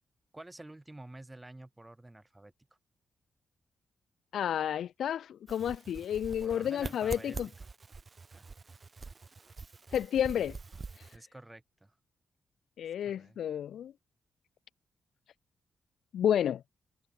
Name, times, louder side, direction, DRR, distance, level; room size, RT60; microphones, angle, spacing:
voice 1, 0.3-2.5 6.4-7.4 8.3-8.5 11.1-11.9 13.0-13.4, right 2 dB, 10° right, 6.8 m, -50 dB
voice 2, 4.3-7.5 9.9-10.6 12.8-13.9 16.1-16.6, left 9 dB, 80° left, 0.7 m, -31 dB
sound 1, 5.5-11.2, right 4 dB, 30° right, 6.5 m, -45 dB
wide cardioid pair, 130°, 0 cm